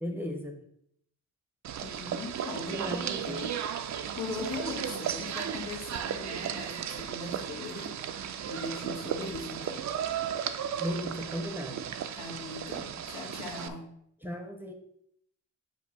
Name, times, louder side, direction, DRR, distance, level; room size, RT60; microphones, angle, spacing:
voice 1, 0.0-0.6 2.6-3.5 10.8-11.9 14.2-14.7, equal, 5° right, 3 dB, 0.8 m, -36 dB
sound 1, 1.6-13.7, right 8 dB, 60° right, 0.5 m, -35 dB
voice 2, 1.8-3.6 4.2-8.1 8.5-9.8 12.1-13.9, left 3 dB, 85° left, -2 dB, 2.0 m, -40 dB
8.1 x 2.7 x 5.9 m, 0.72 s
wide cardioid pair, 150°, 31 cm